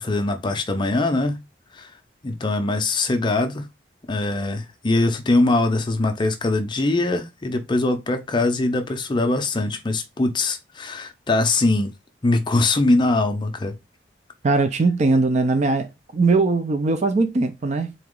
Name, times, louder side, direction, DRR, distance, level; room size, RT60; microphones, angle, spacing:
voice 1, 0.0-1.4 1.7-1.9 2.2-3.7 4.1-11.9 12.2-13.7, left 2 dB, 25° left, 0.5 m, -22 dB
voice 2, 14.4-17.9, right 3 dB, 40° right, 0.4 m, -20 dB
3.9 x 2.8 x 3.7 m
head